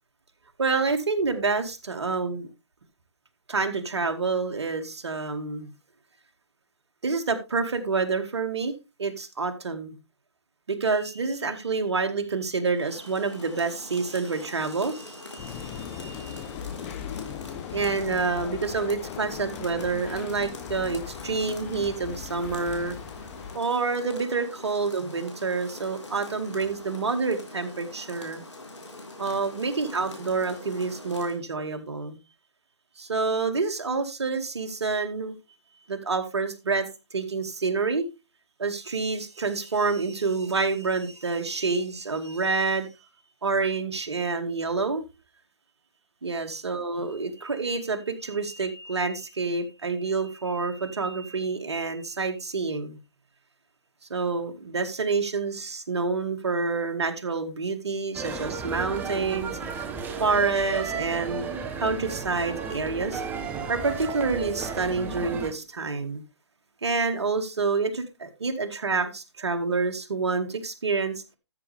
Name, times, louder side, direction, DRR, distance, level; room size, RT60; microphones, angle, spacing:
voice 1, 0.6-2.5 3.5-5.7 7.0-9.9 10.7-16.4 17.7-22.9 23.5-28.4 29.2-32.2 33.0-35.3 35.9-36.9 37.1-38.0 38.6-42.9 43.4-45.0 46.2-53.0 54.1-59.5 60.2-61.5 61.8-63.2 63.7-66.2 66.8-71.1, right 4 dB, 70° right, 2.2 m, -28 dB
Rain, 12.7-31.4, left 2 dB, 80° left, 4.2 m, -44 dB
sound 1, 15.4-23.6, left 10 dB, 25° left, 0.9 m, -39 dB
sound 2, 58.1-65.5, right 5 dB, 10° right, 1.0 m, -33 dB
13.5 x 6.6 x 3.4 m
figure-of-eight pair, 140°, 15 cm